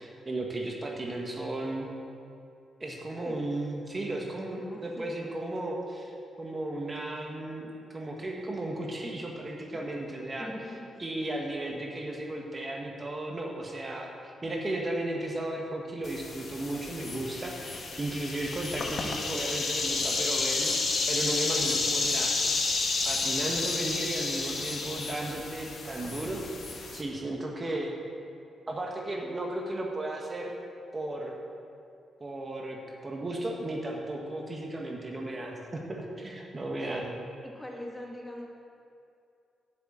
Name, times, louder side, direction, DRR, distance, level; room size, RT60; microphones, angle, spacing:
voice 1, 0.0-1.9 2.8-6.1 6.4-10.5 11.0-20.8 21.1-22.3 23.0-26.4 26.9-27.9 28.7-30.5 30.9-31.4 32.2-32.8 33.0-37.0, right 1 dB, 30° right, 0 dB, 1.5 m, -35 dB
voice 2, 4.6-5.3 10.4-10.8 36.8-37.0 37.4-38.5, left 1 dB, 15° left, -1 dB, 1.7 m, -41 dB
sound 1, 16.0-27.0, left 3 dB, 55° left, 1.4 m, -31 dB
8.2 x 6.7 x 8.0 m, 2.5 s
cardioid pair, 80°, 0 cm